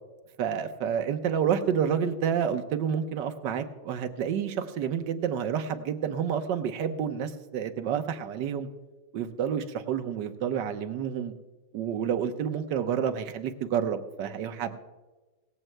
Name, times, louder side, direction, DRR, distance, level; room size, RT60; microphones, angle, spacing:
voice 1, 0.4-8.7 9.1-11.3 11.7-14.8, right 8 dB, 70° right, 8 dB, 1.5 m, -29 dB
18.0 x 15.5 x 2.2 m, 1.2 s
omnidirectional pair, 2.1 m